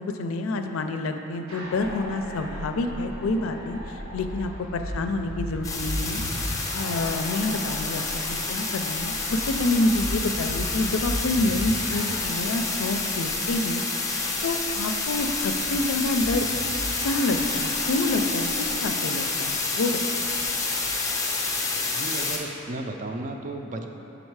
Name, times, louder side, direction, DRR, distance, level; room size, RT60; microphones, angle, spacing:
voice 1, 0.0-8.0 8.5-14.0 14.4-16.5 17.0-20.2, left 2 dB, 85° left, 6 dB, 0.4 m, -28 dB
sound 1, 1.5-20.9, equal, 85° right, 1.1 m, -37 dB
sound 2, 5.6-22.4, left 3 dB, 15° left, 0.5 m, -29 dB
voice 2, 21.9-23.8, right 2 dB, 40° right, 4 dB, 0.4 m, -34 dB
6.4 x 3.9 x 4.6 m, 2.9 s
head